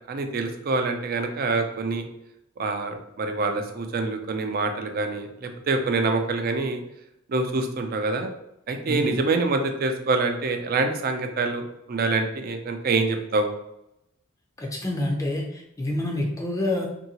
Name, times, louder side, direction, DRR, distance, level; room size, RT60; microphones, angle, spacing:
voice 1, 0.1-2.0 2.6-6.8 7.3-8.3 8.7-13.5, right 3 dB, 45° right, 6 dB, 0.4 m, -26 dB
voice 2, 8.8-9.2 14.6-16.9, left 1 dB, 15° left, -1 dB, 0.5 m, -27 dB
2.7 x 2.7 x 2.8 m, 0.83 s
head